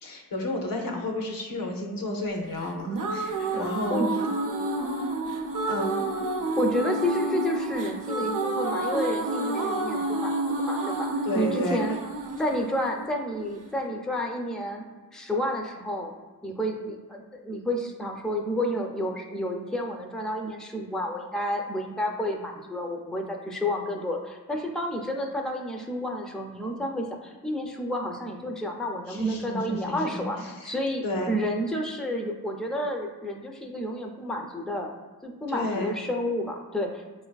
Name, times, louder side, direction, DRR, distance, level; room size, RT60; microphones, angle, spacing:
voice 1, 0.0-4.0 5.7-5.9 11.2-11.8 29.1-30.8 31.0-31.4 35.5-35.9, left 1 dB, 85° left, 1 dB, 0.6 m, -31 dB
sound 1, 2.6-13.7, right 2 dB, 70° right, 0.5 m, -29 dB
voice 2, 3.4-4.1 6.6-10.3 10.7-11.1 11.3-12.0 12.4-14.8 15.1-16.1 16.4-34.9 35.2-37.0, left 1 dB, ahead, 2 dB, 0.4 m, -30 dB
4.5 x 2.4 x 2.2 m, 1.3 s
cardioid pair, 50°, 33 cm